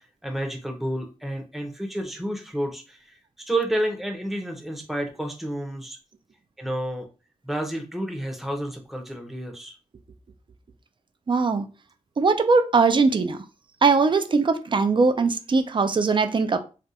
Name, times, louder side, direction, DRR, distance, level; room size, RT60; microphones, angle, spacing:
voice 1, 0.0-6.0 6.6-7.0 7.4-9.8, right 1 dB, ahead, 0.7 m, -30 dB
voice 2, 11.3-11.7 12.2-13.4 13.8-16.6, right 4 dB, 40° right, 0.4 m, -20 dB
2.5 x 2.2 x 4.0 m
wide cardioid pair, 115°, 13 cm